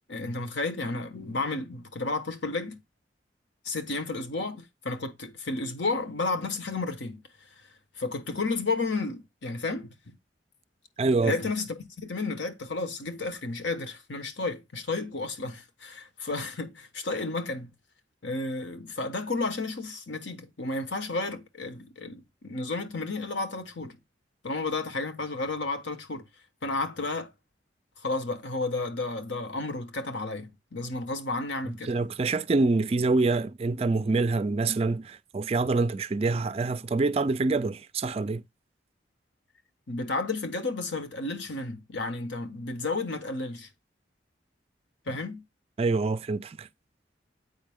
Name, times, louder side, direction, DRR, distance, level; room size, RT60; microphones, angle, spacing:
voice 1, 0.1-2.8 3.6-7.2 8.0-10.2 11.2-17.7 18.2-24.0 24.4-26.2 26.6-27.3 28.0-31.9 39.9-43.7 45.1-45.4, left 3 dB, 75° left, 1.1 m, -32 dB
voice 2, 11.0-11.4 31.9-38.4 45.8-46.7, right 3 dB, 30° right, 0.3 m, -26 dB
8.0 x 5.2 x 3.5 m
head